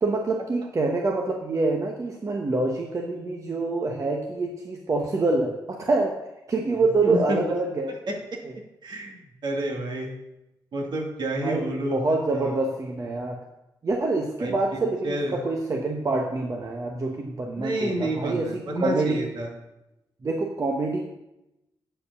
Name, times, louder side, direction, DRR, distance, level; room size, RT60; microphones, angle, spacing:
voice 1, 0.0-6.1 6.5-7.9 8.4-8.5 11.4-13.4 13.8-19.2 20.2-21.0, right 3 dB, 40° right, 1 dB, 1.1 m, -26 dB
voice 2, 7.0-7.6 7.9-8.1 8.8-9.2 9.4-10.1 10.7-12.6 14.4-15.4 17.6-19.5, right 1 dB, 65° right, 0 dB, 2.2 m, -30 dB
9.0 x 4.9 x 6.6 m, 0.90 s
cardioid pair, 95°, 8 cm